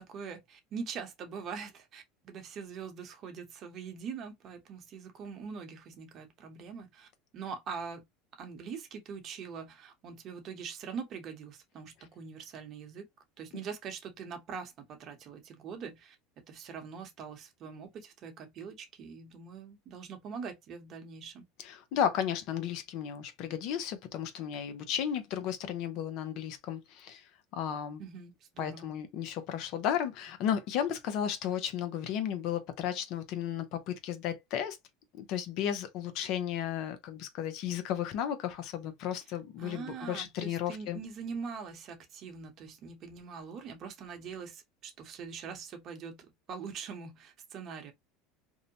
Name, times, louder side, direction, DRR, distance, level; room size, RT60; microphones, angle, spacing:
voice 1, 0.0-8.0 8.4-13.0 13.4-16.2 16.5-21.4 28.0-28.9 39.6-47.9, right 6 dB, 45° right, 0.9 m, -43 dB
voice 2, 21.6-27.2 27.5-28.0 28.6-34.8 35.1-41.0, left 9 dB, 60° left, 0.6 m, -34 dB
2.7 x 2.1 x 2.7 m
supercardioid pair, 100°, 0 cm